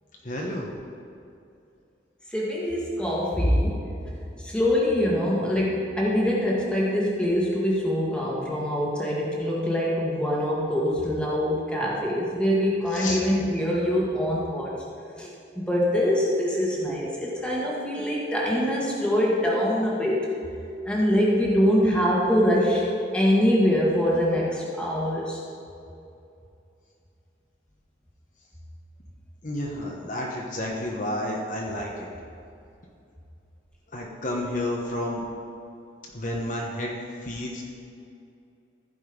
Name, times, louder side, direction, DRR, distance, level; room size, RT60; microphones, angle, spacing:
voice 1, 0.2-0.7 12.9-13.2 29.4-32.1 33.9-35.3 36.1-36.9 37.2-37.7, left 1 dB, 45° left, -2 dB, 1.1 m, -31 dB
voice 2, 2.3-3.9 4.4-14.7 15.2-15.3 15.5-20.3 20.9-25.4, equal, 5° left, -5 dB, 1.7 m, -24 dB
15.0 x 5.3 x 5.2 m, 2.6 s
head